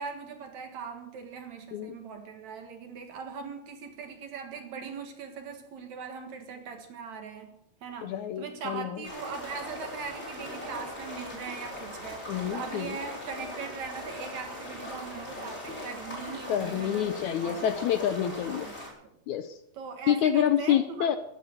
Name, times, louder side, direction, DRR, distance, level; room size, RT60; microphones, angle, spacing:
voice 1, 0.0-17.7 18.4-18.7 19.7-21.1, right 5 dB, 60° right, 5 dB, 2.8 m, -40 dB
voice 2, 8.0-8.9 12.3-13.0 16.5-18.7 19.3-19.6 20.1-21.2, left 10 dB, 75° left, 10 dB, 1.8 m, -27 dB
sound 1, 9.0-18.9, left 1 dB, 20° left, 4.7 m, -40 dB
15.0 x 12.0 x 6.5 m, 0.81 s
omnidirectional pair, 4.1 m